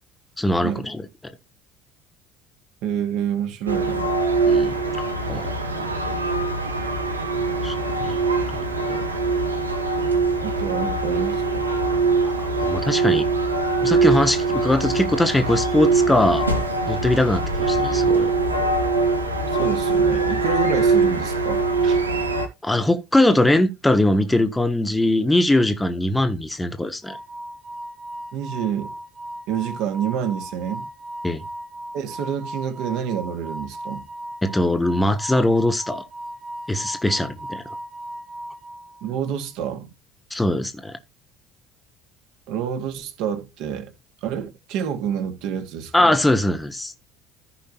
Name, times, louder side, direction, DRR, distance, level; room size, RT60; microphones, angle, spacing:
voice 1, 0.4-1.0 4.5-4.8 5.3-5.5 7.6-7.7 8.0-8.2 8.9-9.0 12.6-13.3 13.8-16.5 16.9-18.3 22.6-27.2 31.2-31.4 34.4-36.0 36.7-37.6 40.3-41.0 45.9-46.9, left 1 dB, 10° left, 1.3 m, -21 dB
voice 2, 2.8-4.1 5.8-5.9 10.4-11.7 19.5-22.0 28.3-28.9 29.5-30.9 31.9-34.1 39.0-39.9 42.5-43.9 44.2-46.1, right 8 dB, 60° right, 2.1 m, -28 dB
sound 1, 3.7-22.5, right 3 dB, 85° right, 1.3 m, -22 dB
sound 2, 27.0-39.3, right 1 dB, 25° right, 1.9 m, -37 dB
14.5 x 5.2 x 3.0 m
figure-of-eight pair, 60°, 0 cm